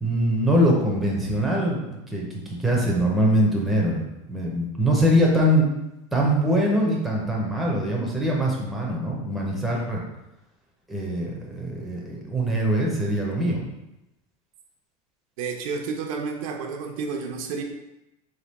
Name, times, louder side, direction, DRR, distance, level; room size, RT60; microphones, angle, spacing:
voice 1, 0.0-4.0 4.3-5.7 6.1-10.0 10.9-13.6, equal, ahead, -3 dB, 0.4 m, -23 dB
voice 2, 15.4-17.6, right 5 dB, 90° right, 3 dB, 0.7 m, -30 dB
3.4 x 2.9 x 4.0 m, 0.92 s
supercardioid pair, 175°, 17 cm